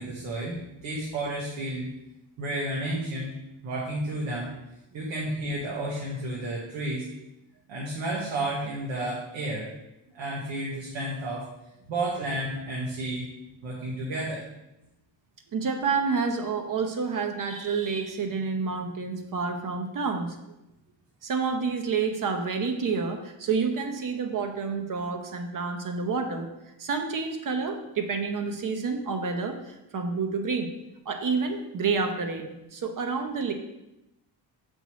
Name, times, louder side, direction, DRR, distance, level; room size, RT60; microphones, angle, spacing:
voice 1, 0.0-1.8 2.4-3.3 3.6-4.5 4.9-7.1 7.7-9.7 10.1-11.5 11.9-13.3 13.6-14.4, right 1 dB, 90° right, -4 dB, 1.6 m, -31 dB
voice 2, 15.5-20.4 21.2-26.5 26.8-30.7 31.0-33.5, right 5 dB, 45° right, 5 dB, 0.9 m, -29 dB
7.2 x 5.4 x 3.1 m, 0.91 s
cardioid pair, 130°, 46 cm